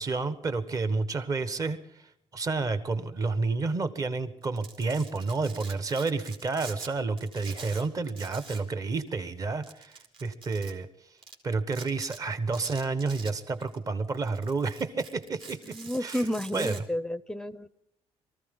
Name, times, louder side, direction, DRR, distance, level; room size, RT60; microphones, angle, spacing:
voice 1, 0.0-10.9 11.4-16.2 16.5-16.8, right 3 dB, 35° right, 11 dB, 1.3 m, -30 dB
Domestic sounds home sounds, 4.4-6.9 7.2-8.7 9.0-9.1 9.6-10.7 11.2-11.3 11.7-12.2 12.5-13.8 14.1-16.8, right 5 dB, 55° right, 2.8 m, -45 dB
voice 2, 15.7-17.7, left 1 dB, 5° left, 15 dB, 0.6 m, -31 dB
23.5 x 14.5 x 3.8 m, 0.76 s
cardioid pair, 135°, 11 cm